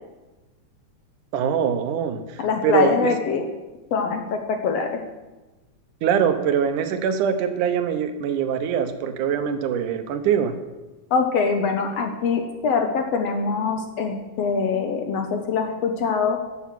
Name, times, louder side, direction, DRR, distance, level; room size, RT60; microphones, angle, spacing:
voice 1, 1.3-3.1 6.0-10.5, right 8 dB, 80° right, 8 dB, 2.4 m, -23 dB
voice 2, 2.4-3.4 3.9-5.0 11.1-16.4, left 5 dB, 65° left, 5 dB, 1.8 m, -23 dB
12.0 x 7.3 x 7.6 m, 1.1 s
omnidirectional pair, 3.6 m